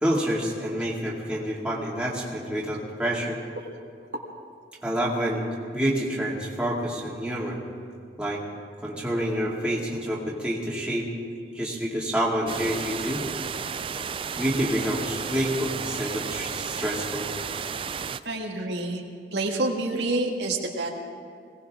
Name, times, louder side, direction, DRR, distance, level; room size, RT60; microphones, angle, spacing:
voice 1, 0.0-3.4 4.8-7.6 8.2-8.4 8.8-11.1 11.5-13.2 14.4-17.3, equal, 5° right, -5 dB, 2.3 m, -28 dB
sound 1, 12.5-18.2, right 6 dB, 30° right, 0.3 m, -33 dB
voice 2, 18.3-19.0 19.3-20.9, right 2 dB, 80° right, 0 dB, 1.8 m, -27 dB
21.5 x 18.0 x 3.7 m, 2.4 s
head